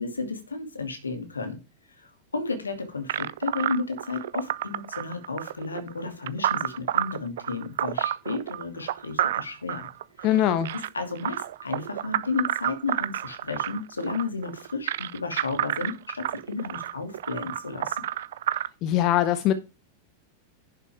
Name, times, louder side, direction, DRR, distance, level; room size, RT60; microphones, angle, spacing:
voice 1, 0.0-1.6 2.0-9.9 10.2-10.5 10.7-18.0, left 4 dB, 75° left, 2.5 m, -33 dB
sound 1, 3.1-18.7, right 12 dB, 60° right, 0.5 m, -30 dB
voice 2, 10.2-10.7 18.8-19.5, left 12 dB, 40° left, 0.9 m, -22 dB
11.0 x 6.9 x 3.6 m
figure-of-eight pair, 90°, 0 cm